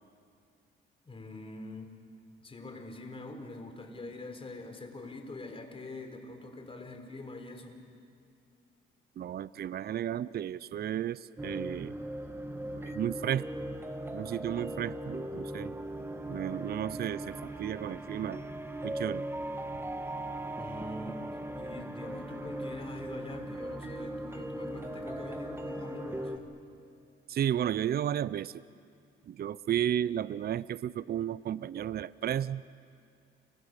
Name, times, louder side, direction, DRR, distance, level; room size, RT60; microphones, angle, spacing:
voice 1, 1.0-1.9 2.4-7.8 20.6-26.5, left 2 dB, 30° left, 6 dB, 3.9 m, -44 dB
voice 2, 9.2-11.9 12.7-13.5 14.1-15.7 16.3-18.4 18.8-19.3 27.3-28.6 29.3-32.6, right 10 dB, 50° right, 18 dB, 0.6 m, -33 dB
sound 1, 11.4-26.4, right 1 dB, 10° right, 2.1 m, -39 dB
29.5 x 25.5 x 6.7 m, 2.3 s
cardioid pair, 90°, 20 cm